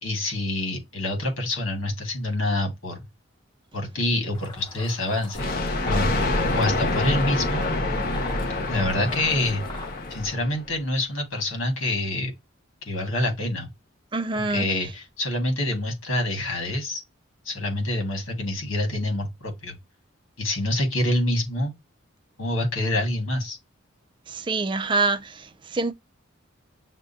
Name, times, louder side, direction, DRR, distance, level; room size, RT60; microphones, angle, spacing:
voice 1, 0.0-3.1 3.7-5.6 5.8-6.2 6.5-7.7 8.7-9.6 10.1-12.3 12.9-13.7 14.3-17.0 17.4-19.7 20.4-21.7 22.4-23.6, left 1 dB, 70° left, 1.7 m, -26 dB
sound 1, 4.3-10.3, left 3 dB, 20° left, 0.7 m, -43 dB
Thunder, 5.3-10.7, left 2 dB, 45° left, 0.9 m, -26 dB
voice 2, 14.1-14.7 24.3-25.3 25.7-25.9, right 3 dB, 25° right, 0.3 m, -25 dB
6.2 x 2.2 x 2.6 m
head